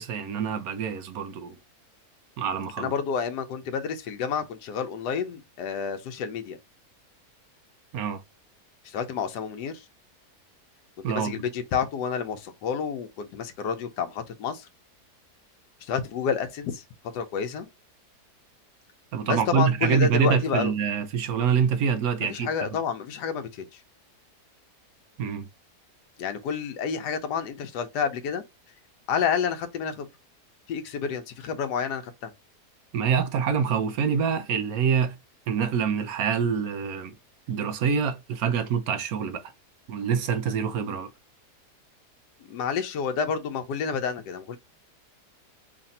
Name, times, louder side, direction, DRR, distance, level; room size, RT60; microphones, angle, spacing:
voice 1, 0.0-1.6 2.4-2.9 7.9-8.2 11.0-11.3 19.1-22.5 25.2-25.5 32.9-35.2 35.5-37.1 37.5-39.5 39.9-41.1, right 7 dB, 70° right, 1.0 m, -26 dB
voice 2, 2.8-6.6 8.8-9.8 11.0-14.7 15.8-16.8 17.1-17.7 19.3-20.7 22.2-23.8 26.2-28.4 29.1-30.1 30.7-32.3 42.5-44.6, left 6 dB, 90° left, 1.2 m, -29 dB
3.3 x 2.5 x 4.0 m
omnidirectional pair, 1.7 m